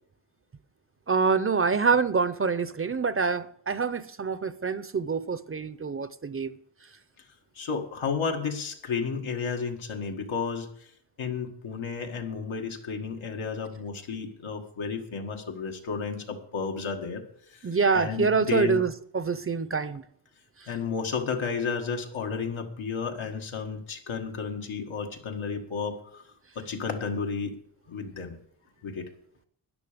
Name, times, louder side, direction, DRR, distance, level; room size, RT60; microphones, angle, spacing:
voice 1, 1.1-6.5 17.6-20.0, right 5 dB, 30° right, 0.5 m, -26 dB
voice 2, 7.6-10.7 11.2-17.2 17.5-18.8 20.7-26.2 26.6-27.6 27.9-28.4 28.8-29.1, left 5 dB, 90° left, 1.9 m, -32 dB
13.5 x 10.0 x 5.1 m
wide cardioid pair, 115°, 47 cm